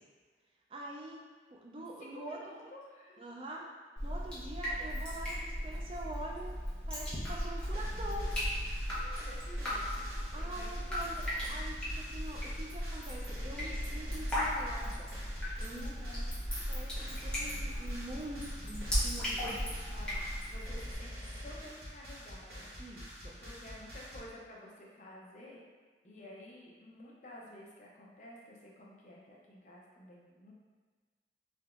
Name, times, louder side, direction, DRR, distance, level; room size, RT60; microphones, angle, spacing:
voice 1, 0.7-1.2 1.5-2.6 3.2-3.7 4.0-6.5 6.9-8.3 10.3-15.1 15.6-15.9 16.7-19.5 22.8-23.4, right 1 dB, 30° right, -1 dB, 0.3 m, -45 dB
voice 2, 2.0-3.3 8.9-11.1 15.8-16.3 19.4-22.8 23.4-25.6 26.0-30.5, left 1 dB, 45° left, -3 dB, 0.5 m, -52 dB
Drip, 4.0-20.9, equal, 5° left, 0.7 m, -37 dB
sound 1, 7.3-24.2, equal, 65° right, 0.9 m, -47 dB
3.3 x 2.8 x 2.4 m, 1.5 s
head